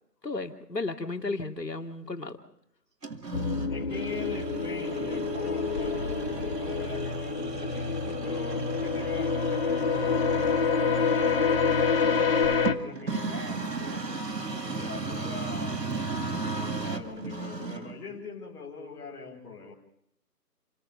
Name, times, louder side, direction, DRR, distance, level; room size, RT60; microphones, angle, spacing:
voice 1, 0.2-2.4, left 3 dB, 90° left, 4 dB, 2.9 m, -33 dB
sound 1, 3.0-18.0, right 4 dB, 85° right, 2.3 m, -35 dB
sound 2, 3.3-12.7, left 5 dB, 35° left, 1.7 m, -27 dB
voice 2, 3.7-10.7 11.1-14.2 14.6-19.7, left 4 dB, 5° left, -7 dB, 4.3 m, -42 dB
30.0 x 13.0 x 6.9 m, 0.72 s
figure-of-eight pair, 165°, 48 cm